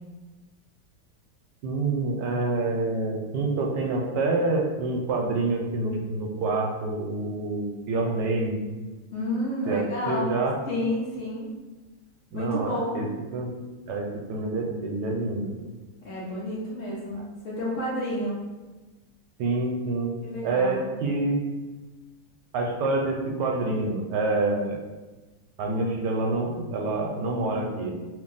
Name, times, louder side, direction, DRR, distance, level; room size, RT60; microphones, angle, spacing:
voice 1, 1.6-8.6 9.7-10.6 12.3-13.5 13.9-15.5 19.4-20.1 20.4-21.4 22.5-24.8 25.6-27.9, right 2 dB, 80° right, 1 dB, 1.2 m, -27 dB
voice 2, 9.1-11.5 12.3-13.0 16.0-18.4 20.2-20.9, left 1 dB, 55° left, -7 dB, 1.0 m, -30 dB
2.9 x 2.6 x 3.7 m, 1.2 s
omnidirectional pair, 1.9 m